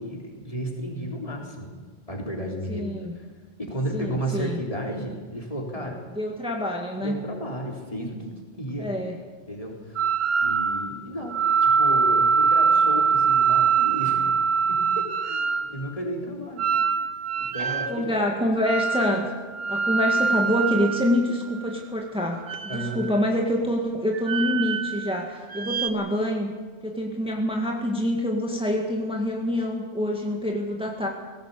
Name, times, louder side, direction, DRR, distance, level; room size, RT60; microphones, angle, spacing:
voice 1, 0.0-1.7 2.1-2.8 3.2-3.3 3.6-6.0 7.0-8.9 9.5-14.3 14.7-15.4 15.7-16.7 17.4-18.2 22.7-23.0, equal, 30° left, 0 dB, 4.0 m, -33 dB
voice 2, 2.7-3.1 3.9-4.6 6.2-7.2 8.8-9.2 17.9-19.3 19.7-26.5 26.8-31.1, left 1 dB, 5° right, 0 dB, 2.0 m, -26 dB
sound 1, 10.0-10.9 11.3-15.7 16.6-18.0 18.6-19.2 19.5-21.8 22.4-23.2 24.1-25.1 25.5-25.9, right 6 dB, 65° right, 1.5 m, -23 dB
19.0 x 17.5 x 8.5 m, 1.5 s
omnidirectional pair, 1.1 m